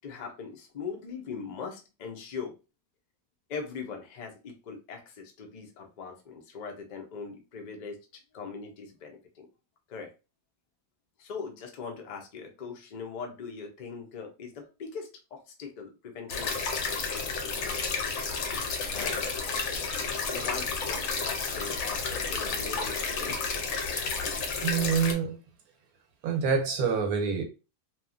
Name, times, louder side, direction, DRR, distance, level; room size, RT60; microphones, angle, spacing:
voice 1, 0.0-2.5 3.5-9.5 9.9-10.1 11.2-16.6 17.6-17.9 18.9-19.3 20.2-23.4, left 5 dB, 90° left, 0.3 m, -40 dB
sound 1, 16.3-25.1, left 4 dB, 60° left, 0.8 m, -31 dB
voice 2, 24.6-25.4 26.2-27.4, right 6 dB, 80° right, 1.1 m, -26 dB
2.9 x 2.3 x 2.4 m
omnidirectional pair, 1.6 m